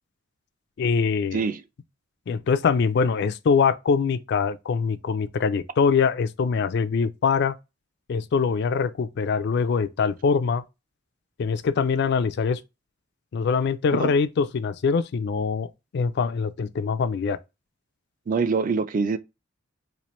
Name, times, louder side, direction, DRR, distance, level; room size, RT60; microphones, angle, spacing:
voice 1, 0.8-1.4 2.3-7.5 8.1-10.6 11.4-12.6 13.3-17.4, left 5 dB, 55° left, 0.3 m, -23 dB
voice 2, 18.3-19.2, right 4 dB, 45° right, 0.4 m, -24 dB
4.3 x 2.5 x 3.1 m
head